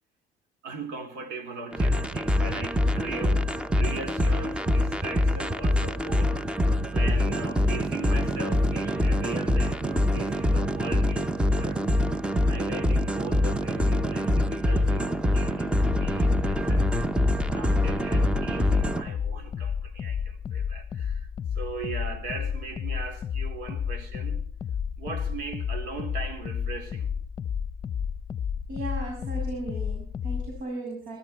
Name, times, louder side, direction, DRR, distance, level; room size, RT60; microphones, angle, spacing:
voice 1, 0.6-3.5 3.7-6.4 6.9-11.9 12.4-16.9 17.4-21.3 21.5-24.4 25.0-27.1, right 4 dB, 90° right, 3.5 m, -39 dB
sound 1, 1.7-19.0, left 1 dB, 5° right, 0.7 m, -25 dB
sound 2, 15.8-30.6, left 7 dB, 30° left, 0.8 m, -32 dB
voice 2, 28.7-31.2, right 2 dB, 70° right, 6.5 m, -36 dB
22.5 x 13.5 x 4.4 m
cardioid pair, 130°, 15 cm